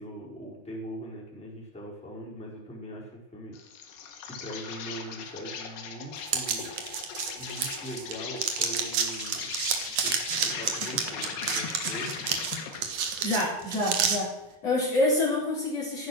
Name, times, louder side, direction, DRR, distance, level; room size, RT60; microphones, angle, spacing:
voice 1, 0.0-3.6 4.2-6.7 7.4-9.5 10.0-12.3, right 1 dB, ahead, -5 dB, 4.5 m, -41 dB
Insect, 3.5-12.9, left 6 dB, 85° left, 3.7 m, -38 dB
sound 1, 6.3-8.1 8.4-14.2, right 7 dB, 55° right, 2.6 m, -29 dB
voice 2, 13.2-14.3 14.6-16.1, left 2 dB, 40° left, -4 dB, 4.4 m, -27 dB
14.5 x 12.0 x 6.4 m, 0.88 s
omnidirectional pair, 4.7 m